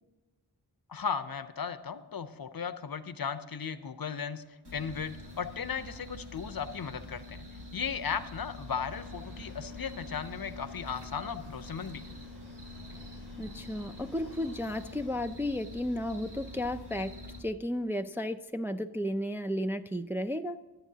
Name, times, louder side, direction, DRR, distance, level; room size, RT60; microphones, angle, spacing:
voice 1, 0.9-4.4 4.7-7.5 7.7-12.1, left 6 dB, 60° left, 12 dB, 0.7 m, -36 dB
sound 1, 4.6-17.4, left 2 dB, 75° right, 2.3 m, -45 dB
sound 2, 8.9-15.1, equal, 30° right, 4.6 m, -56 dB
voice 2, 13.4-20.6, left 1 dB, 5° right, 7 dB, 0.3 m, -33 dB
23.0 x 8.1 x 2.8 m, 1.2 s
wide cardioid pair, 70°, 40 cm